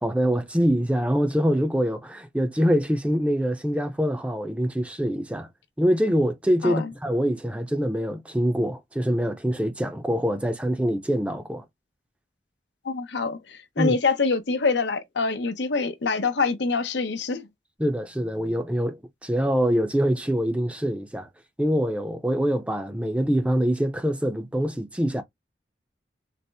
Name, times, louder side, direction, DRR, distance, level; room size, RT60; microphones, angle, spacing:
voice 1, 0.0-5.5 5.8-11.6 13.8-14.0 17.8-21.3 21.6-25.2, equal, 5° right, 0.5 m, -24 dB
voice 2, 12.8-17.5, left 4 dB, 80° left, 0.7 m, -25 dB
4.2 x 2.0 x 3.3 m
head